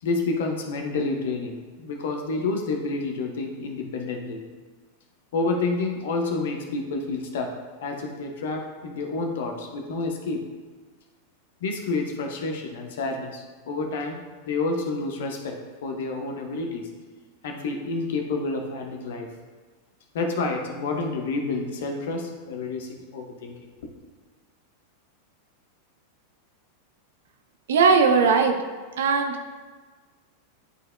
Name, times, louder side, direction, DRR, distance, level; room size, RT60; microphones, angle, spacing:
voice 1, 0.0-4.4 5.3-7.5 7.8-10.4 11.6-16.9 17.4-19.3 20.1-23.9, left 3 dB, 55° left, 3 dB, 0.9 m, -29 dB
voice 2, 27.7-28.5 29.0-29.4, right 5 dB, 60° right, 5 dB, 0.7 m, -18 dB
11.0 x 4.3 x 2.2 m, 1.4 s
figure-of-eight pair, 90°, 0 cm